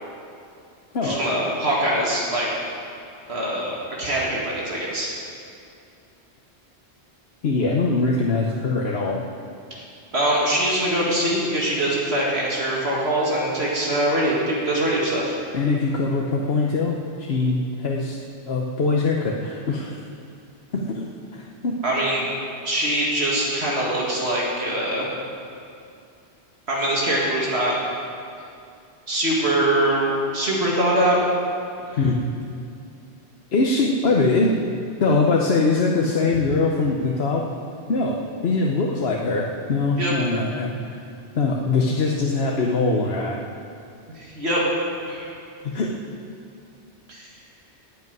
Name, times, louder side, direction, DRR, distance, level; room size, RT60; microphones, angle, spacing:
voice 1, 1.0-2.5 3.3-5.1 10.1-15.4 21.8-22.3 22.6-25.1 26.7-27.8 29.1-31.2 31.9-32.0 40.0-40.1 44.1-44.6 45.1-45.3 47.1-47.3, right 1 dB, 70° right, -5 dB, 2.4 m, -23 dB
voice 2, 7.4-9.2 15.5-18.2 18.5-20.0 20.7-21.8 32.0-32.2 33.5-34.7 35.0-37.4 37.9-41.0 41.3-43.4 45.6-46.0, left 3 dB, 65° left, -1 dB, 1.2 m, -22 dB
10.5 x 8.4 x 9.5 m, 2.5 s
omnidirectional pair, 1.1 m